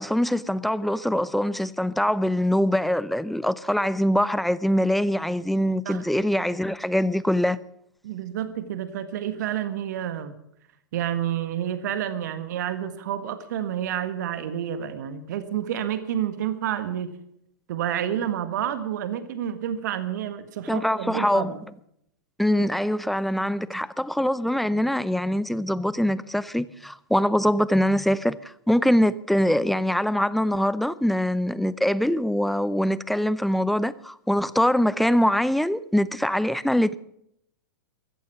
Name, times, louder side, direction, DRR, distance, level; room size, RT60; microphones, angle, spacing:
voice 1, 0.0-7.6 20.7-21.5 22.4-37.0, equal, ahead, 0.6 m, -23 dB
voice 2, 8.0-10.3 10.9-17.1 17.7-21.6, right 10 dB, 55° right, 1.7 m, -29 dB
15.0 x 14.5 x 6.1 m
figure-of-eight pair, 100°, 11 cm